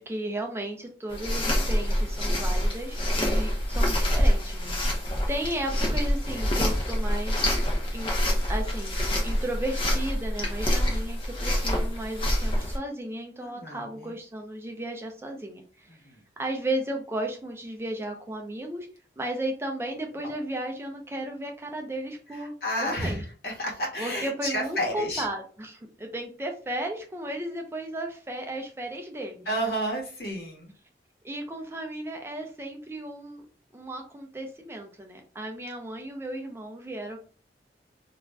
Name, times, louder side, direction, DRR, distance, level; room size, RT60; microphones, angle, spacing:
voice 1, 0.0-4.8 5.3-7.5 7.9-8.1 8.5-9.0 9.2-15.9 16.4-18.9 19.2-22.5 22.8-23.2 24.0-29.5 31.2-33.4 33.7-37.2, right 1 dB, 15° right, 2 dB, 0.3 m, -34 dB
sound 1, 1.1-12.8, equal, 30° left, 0.6 m, -26 dB
voice 2, 13.4-14.1 15.9-16.2 22.3-25.3 29.5-30.7, equal, 65° left, -1 dB, 1.0 m, -31 dB
2.4 x 2.1 x 3.4 m, 0.38 s
head